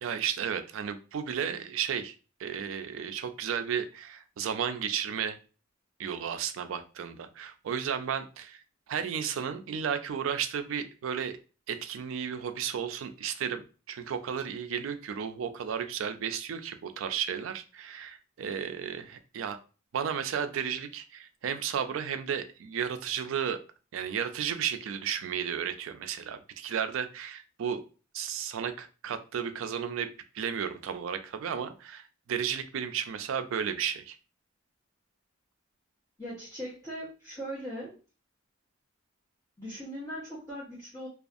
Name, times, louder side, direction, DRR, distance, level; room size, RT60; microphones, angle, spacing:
voice 1, 0.0-2.1 2.4-5.4 6.0-8.6 8.9-11.4 11.7-13.6 13.9-19.6 19.9-23.6 23.9-27.8 28.1-30.1 30.3-32.0 32.3-34.2, right 8 dB, 75° right, 9 dB, 0.3 m, -33 dB
voice 2, 36.2-38.0 39.6-41.1, equal, 15° left, -11 dB, 0.8 m, -39 dB
2.5 x 2.3 x 2.5 m, 0.35 s
head